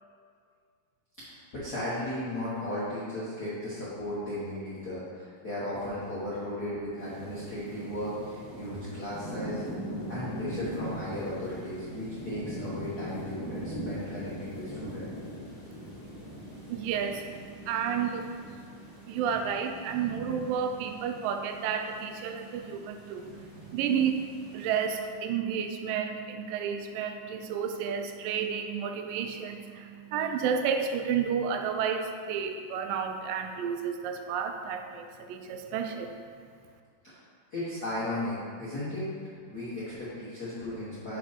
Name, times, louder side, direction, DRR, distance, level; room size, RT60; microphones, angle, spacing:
voice 1, 1.3-9.6 10.1-15.1 37.0-37.2 37.5-39.0 39.5-41.2, left 1 dB, 60° left, -11 dB, 0.9 m, -36 dB
sound 1, 7.0-25.1, equal, 40° left, 1.9 m, -41 dB
voice 2, 16.7-17.3 17.7-18.3 19.1-24.2 24.5-36.2, right 7 dB, 85° right, 6 dB, 2.2 m, -31 dB
5.5 x 5.0 x 5.0 m, 2.1 s
omnidirectional pair, 3.9 m